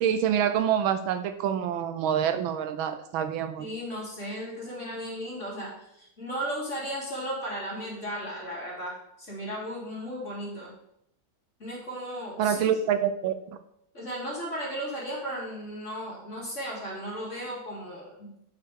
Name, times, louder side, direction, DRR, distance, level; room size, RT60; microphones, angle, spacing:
voice 1, 0.0-3.7 12.4-13.6, right 9 dB, 80° right, 9 dB, 1.4 m, -26 dB
voice 2, 3.6-10.7 11.6-12.8 13.9-18.5, equal, 35° left, -6 dB, 3.5 m, -35 dB
9.2 x 6.8 x 3.6 m, 0.76 s
omnidirectional pair, 2.2 m